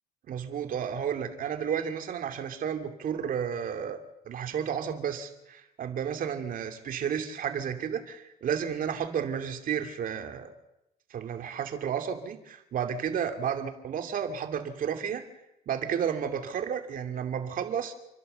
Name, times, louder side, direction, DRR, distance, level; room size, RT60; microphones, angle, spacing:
voice 1, 0.3-10.5 11.1-15.2 15.7-17.9, right 8 dB, 55° right, 7 dB, 2.7 m, -32 dB
29.5 x 11.0 x 7.9 m, 0.89 s
cardioid pair, 110°, 17 cm